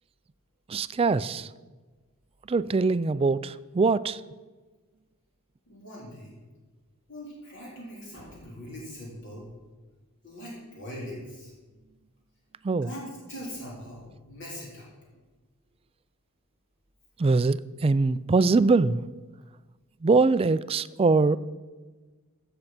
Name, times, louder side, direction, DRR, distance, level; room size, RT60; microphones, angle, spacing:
voice 1, 0.7-1.5 2.5-4.2 12.6-12.9 17.2-19.0 20.0-21.4, right 3 dB, 25° right, 0.3 m, -23 dB
voice 2, 5.7-6.3 7.1-9.5 10.2-11.5 12.8-14.9, equal, 55° left, 3.8 m, -41 dB
16.0 x 6.7 x 6.0 m
head